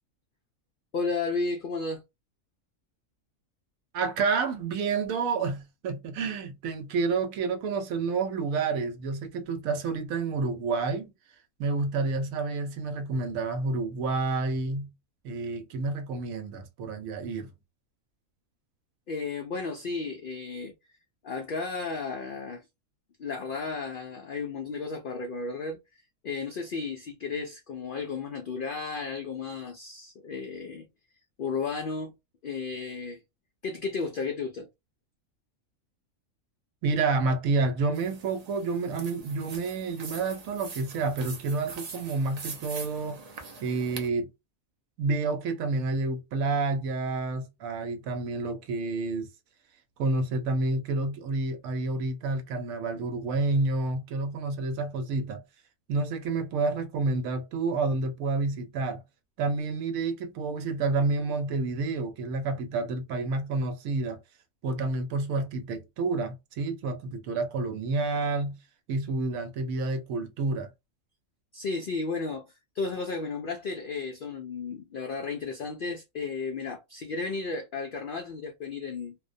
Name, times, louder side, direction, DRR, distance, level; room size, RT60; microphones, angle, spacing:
voice 1, 0.9-2.0 19.1-20.7 21.2-22.7 23.2-25.8 26.2-30.9 31.4-32.1 32.4-33.2 33.6-34.7 71.5-79.2, left 4 dB, 75° left, 0.4 m, -33 dB
voice 2, 3.9-11.1 11.6-14.9 15.2-17.5 36.8-43.2 43.6-44.3 45.0-49.3 50.0-55.4 55.9-59.0 59.4-64.2 64.6-68.6 68.9-70.7, right 3 dB, 80° right, 1.1 m, -29 dB
sound 1, 37.9-44.1, right 4 dB, 55° right, 0.4 m, -43 dB
2.4 x 2.1 x 2.5 m
omnidirectional pair, 1.4 m